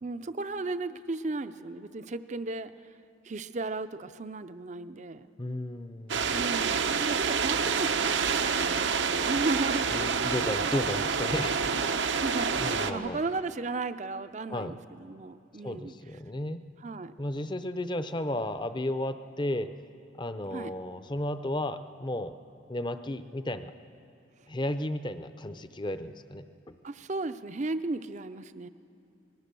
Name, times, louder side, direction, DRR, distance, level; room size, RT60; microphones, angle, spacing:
voice 1, 0.0-2.7 3.2-5.3 6.3-10.1 12.0-15.9 16.8-17.1 20.5-20.7 26.8-28.7, right 3 dB, 40° right, 12 dB, 0.6 m, -35 dB
voice 2, 5.4-6.4 9.9-11.9 12.6-13.2 14.5-14.7 15.6-16.6 17.2-19.7 20.2-22.4 22.7-23.7 24.5-26.8, left 1 dB, 25° left, 11 dB, 0.7 m, -34 dB
sound 1, 6.1-12.9, right 5 dB, 75° right, 0.9 m, -28 dB
26.0 x 19.5 x 6.9 m, 2.6 s
head